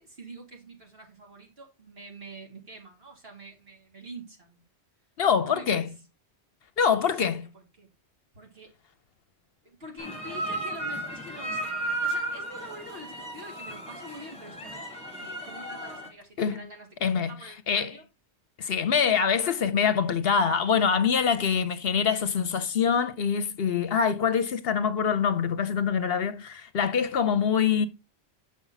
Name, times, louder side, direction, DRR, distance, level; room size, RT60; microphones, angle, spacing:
voice 1, 0.0-4.7 5.5-5.9 6.8-7.9 8.3-8.7 9.6-14.9 15.2-18.0 18.8-19.7 22.3-22.5, right 1 dB, 60° right, 2.8 m, -46 dB
voice 2, 5.2-5.9 6.8-7.5 16.4-16.7 17.0-17.3 17.7-17.9 18.6-27.9, left 7 dB, 65° left, 0.9 m, -24 dB
Central Park China Man With Bow Instrument, 10.0-16.1, right 2 dB, 5° left, 2.3 m, -34 dB
7.1 x 6.2 x 4.0 m
omnidirectional pair, 1.1 m